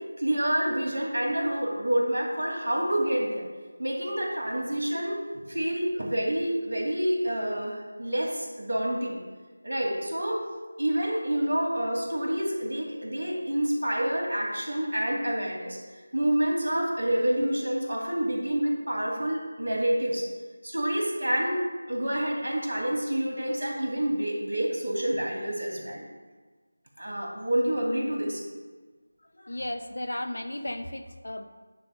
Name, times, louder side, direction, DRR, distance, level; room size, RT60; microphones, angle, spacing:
voice 1, 0.2-3.4 3.8-5.2 5.5-9.2 9.6-10.4 10.8-15.8 16.1-20.3 20.6-21.6 21.9-26.1 27.0-28.4, right 1 dB, 85° right, -2 dB, 2.5 m, -28 dB
voice 2, 29.4-31.4, left 1 dB, 80° left, 7 dB, 0.8 m, -34 dB
10.5 x 3.5 x 5.2 m, 1.4 s
figure-of-eight pair, 170°, 0 cm